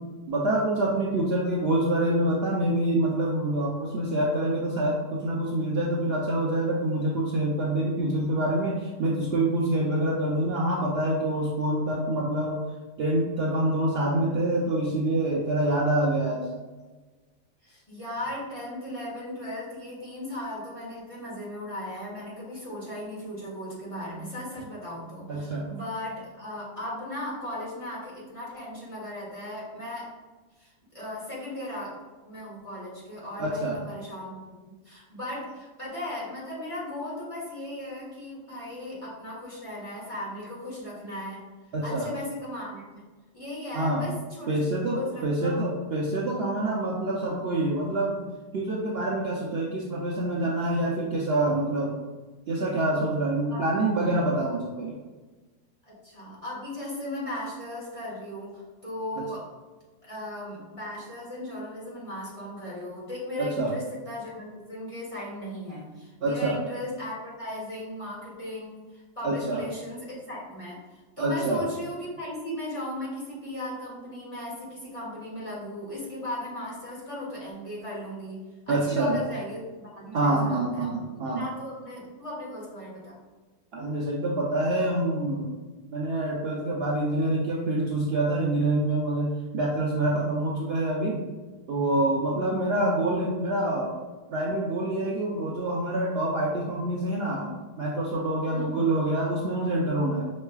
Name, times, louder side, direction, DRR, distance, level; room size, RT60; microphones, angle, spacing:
voice 1, 0.3-12.6 13.0-16.5 25.3-25.7 33.4-33.8 41.7-42.1 43.7-44.0 44.5-48.2 48.5-51.9 52.5-55.0 63.4-63.7 66.2-66.5 69.2-69.6 71.2-71.6 78.7-79.2 80.1-81.5 83.7-85.5 85.9-91.2 91.7-93.9 94.3-97.5 97.8-100.3, right 1 dB, 80° right, -4 dB, 0.5 m, -26 dB
voice 2, 17.6-30.1 30.6-32.0 32.2-34.4 34.7-41.4 41.8-43.0 43.3-44.6 44.9-45.7 53.5-53.6 55.8-59.4 60.0-83.2 92.3-92.6 98.5-98.8, left 1 dB, 20° left, -7 dB, 1.3 m, -37 dB
5.4 x 3.1 x 2.3 m, 1.3 s
omnidirectional pair, 1.7 m